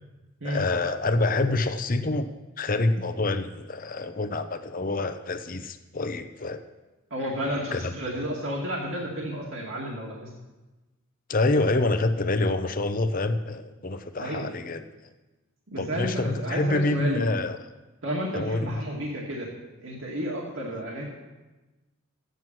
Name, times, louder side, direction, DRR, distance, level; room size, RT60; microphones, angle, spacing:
voice 1, 0.4-2.3 2.6-6.6 7.7-7.8 11.3-14.8 15.8-17.6 18.3-18.8, left 2 dB, 40° left, 9 dB, 0.8 m, -26 dB
voice 2, 7.1-10.3 14.2-14.5 15.7-17.3 18.0-19.5 19.8-21.0, equal, 65° right, -3 dB, 2.2 m, -31 dB
14.0 x 9.3 x 6.1 m, 1.1 s
head